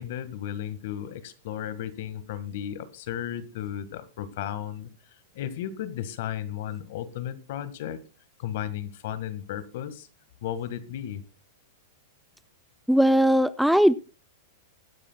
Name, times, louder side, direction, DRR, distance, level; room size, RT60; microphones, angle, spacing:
voice 1, 0.0-4.9 5.3-8.0 8.4-10.1 10.4-11.2, left 10 dB, 65° left, 14 dB, 1.7 m, -34 dB
voice 2, 12.9-13.9, equal, ahead, 14 dB, 0.5 m, -19 dB
21.0 x 10.0 x 2.3 m, 0.29 s
hypercardioid pair, 135°, 0 cm